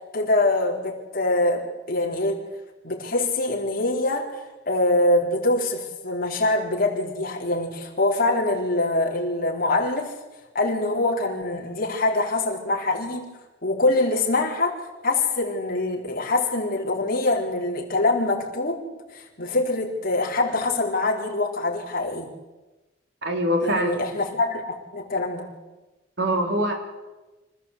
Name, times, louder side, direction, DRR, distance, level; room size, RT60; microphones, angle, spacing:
voice 1, 0.1-2.4 2.8-10.1 10.5-13.3 13.6-14.7 15.0-18.8 19.1-22.3 23.6-25.5, left 2 dB, 50° left, -1 dB, 4.4 m, -24 dB
voice 2, 23.2-23.9 26.2-26.7, equal, 65° right, 3 dB, 4.0 m, -23 dB
26.0 x 15.5 x 8.4 m, 1.1 s
head